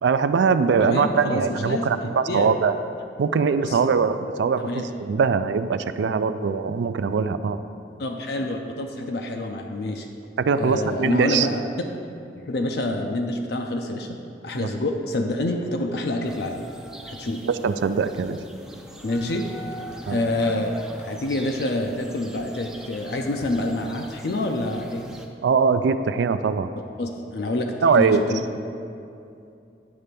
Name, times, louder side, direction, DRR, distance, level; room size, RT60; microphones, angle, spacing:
voice 1, 0.0-2.7 3.2-7.6 10.4-11.5 14.5-14.7 17.5-18.4 20.1-20.2 25.4-26.7 27.8-28.2, right 5 dB, 75° right, 11 dB, 0.3 m, -22 dB
voice 2, 0.8-2.5 3.6-3.8 4.7-4.8 8.0-10.1 10.6-11.6 12.5-14.2 14.4-16.6 17.1-17.4 19.0-19.5 20.1-25.1 27.0-28.4, left 1 dB, 55° left, 3 dB, 0.5 m, -27 dB
sound 1, 16.2-25.3, equal, 5° right, 0.4 m, -42 dB
9.5 x 3.3 x 6.8 m, 2.6 s
head